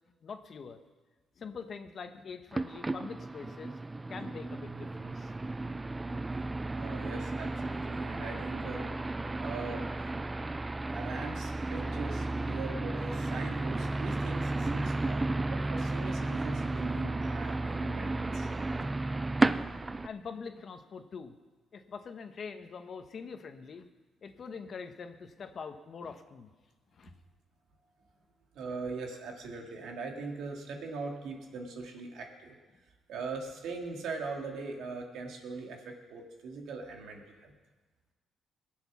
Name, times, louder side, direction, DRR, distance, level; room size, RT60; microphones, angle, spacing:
voice 1, 0.2-0.8 1.4-3.8 4.1-5.3 20.0-21.3 21.7-23.9 24.2-26.5 26.9-27.1, left 5 dB, 50° left, 7 dB, 1.1 m, -44 dB
sound 1, 2.5-20.1, right 2 dB, 20° right, 0.4 m, -33 dB
voice 2, 6.7-8.8 9.4-9.9 10.8-18.5 28.5-32.6 33.1-37.5, right 4 dB, 80° right, 1 dB, 2.3 m, -41 dB
21.0 x 7.8 x 6.2 m, 1.3 s
cardioid pair, 90°, 0 cm